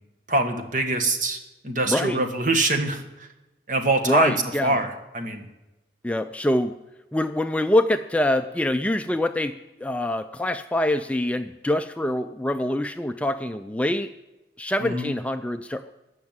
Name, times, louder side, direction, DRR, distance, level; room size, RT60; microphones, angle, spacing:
voice 1, 0.3-1.4 1.6-3.3 3.7-4.3 4.6-5.5 14.8-15.1, right 2 dB, 45° right, 5 dB, 1.5 m, -24 dB
voice 2, 1.9-2.2 4.0-4.8 6.0-6.8 7.1-14.1 14.6-15.8, left 1 dB, 10° left, 8 dB, 0.3 m, -25 dB
14.5 x 6.0 x 9.5 m, 1.0 s
head